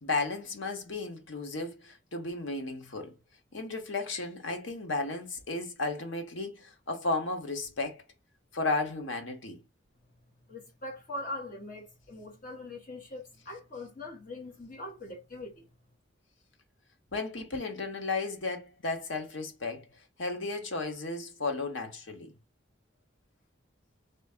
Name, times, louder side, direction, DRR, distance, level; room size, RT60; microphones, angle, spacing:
voice 1, 0.0-3.1 3.5-8.0 8.5-9.6 17.1-19.9 20.2-22.3, left 3 dB, 85° left, 1.1 m, -34 dB
voice 2, 10.5-15.7, left 2 dB, 45° left, 1.4 m, -42 dB
3.9 x 3.0 x 3.5 m
head